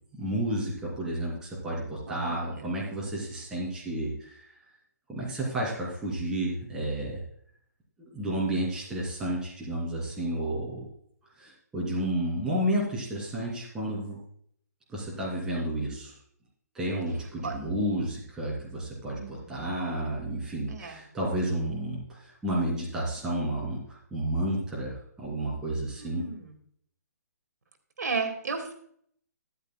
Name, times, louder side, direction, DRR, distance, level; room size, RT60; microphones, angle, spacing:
voice 1, 0.1-4.4 5.1-7.2 8.0-10.9 11.4-14.2 14.9-16.1 16.7-26.3, right 1 dB, 5° right, -5 dB, 2.6 m, -31 dB
voice 2, 2.1-2.7 17.4-17.5 19.1-19.6 20.7-21.0 25.9-26.5 28.0-28.7, right 4 dB, 85° right, 4 dB, 2.1 m, -34 dB
13.0 x 10.5 x 2.2 m, 0.64 s
hypercardioid pair, 165°, 9 cm